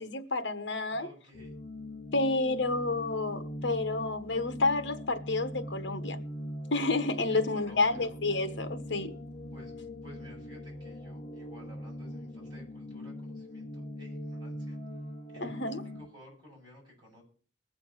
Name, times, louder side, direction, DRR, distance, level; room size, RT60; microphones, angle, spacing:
voice 1, 0.0-1.1 2.1-6.2 6.7-9.1 15.4-15.8, left 3 dB, 70° left, 1.2 m, -30 dB
voice 2, 0.9-1.6 7.3-8.1 9.5-14.8 15.3-17.2, left 1 dB, 25° right, 7.7 m, -54 dB
sound 1, 1.3-16.1, left 1 dB, 35° left, 1.1 m, -41 dB
20.0 x 6.9 x 5.6 m
head